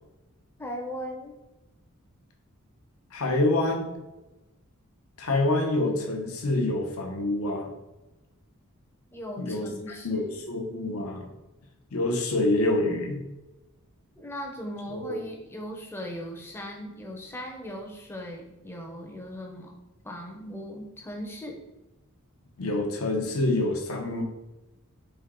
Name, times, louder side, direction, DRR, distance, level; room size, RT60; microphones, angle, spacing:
voice 1, 0.6-1.3 9.1-10.5 14.2-19.7 20.0-21.6, equal, 10° left, 0 dB, 0.6 m, -38 dB
voice 2, 3.1-4.0 5.2-7.7 9.4-11.3 11.9-13.2 14.9-15.2 22.6-24.2, left 2 dB, 70° left, 2 dB, 0.8 m, -27 dB
4.4 x 2.8 x 3.7 m, 1.0 s
head